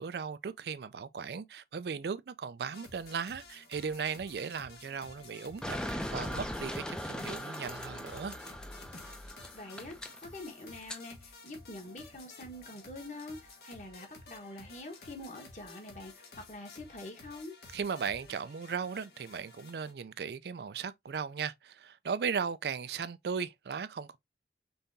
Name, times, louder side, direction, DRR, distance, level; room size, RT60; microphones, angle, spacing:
voice 1, 0.0-5.8 6.1-8.4 17.7-24.2, right 6 dB, 65° right, 0.4 m, -37 dB
sound 1, 2.7-19.9, left 3 dB, 65° left, 1.3 m, -52 dB
sound 2, 5.6-11.0, equal, 5° left, 0.5 m, -40 dB
voice 2, 9.5-17.5, left 2 dB, 40° left, 1.3 m, -45 dB
5.4 x 3.4 x 2.6 m
head